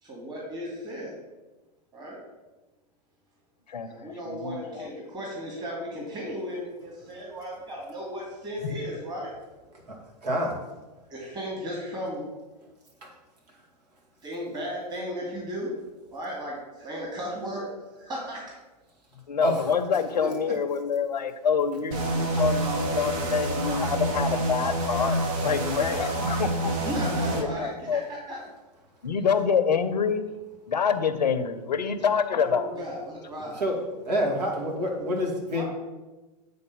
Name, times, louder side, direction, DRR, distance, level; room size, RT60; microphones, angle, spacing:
voice 1, 0.0-1.2 1.9-2.2 3.8-9.3 11.1-12.2 14.2-15.7 16.1-17.7 18.0-18.5 26.8-28.0 28.3-28.4 32.4-33.6 35.5-35.6, equal, 20° right, -4 dB, 2.4 m, -35 dB
voice 2, 3.7-4.9 8.6-8.8 19.3-28.0 29.0-30.2 30.7-32.8, left 6 dB, 85° left, 10 dB, 0.7 m, -27 dB
voice 3, 10.2-10.6 13.0-13.1 19.4-19.6 20.2-20.5 33.4-33.8 34.1-35.6, equal, 75° right, 1 dB, 2.1 m, -27 dB
sound 1, 21.9-27.4, right 1 dB, 50° right, 1.3 m, -27 dB
8.6 x 4.0 x 5.4 m, 1.1 s
hypercardioid pair, 100°, 21 cm